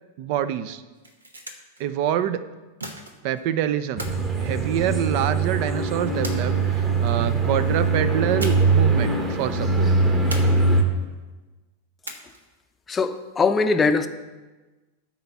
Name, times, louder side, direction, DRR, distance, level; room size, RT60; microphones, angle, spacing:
voice 1, 0.2-0.8 1.8-2.4 3.2-4.1 4.4-9.9, right 10 dB, 45° right, 0.5 m, -26 dB
sound 1, 0.8-1.8 2.8-3.4 4.0-5.2 6.2-7.0 8.4-8.9 9.1-9.2 10.3-11.0 12.0-12.6, right 1 dB, 75° right, 1.0 m, -38 dB
sound 2, 4.0-10.8, right 3 dB, 20° right, 1.3 m, -22 dB
voice 2, 12.9-14.1, left 4 dB, 20° left, 0.6 m, -21 dB
13.0 x 4.4 x 5.8 m
figure-of-eight pair, 90°, 0 cm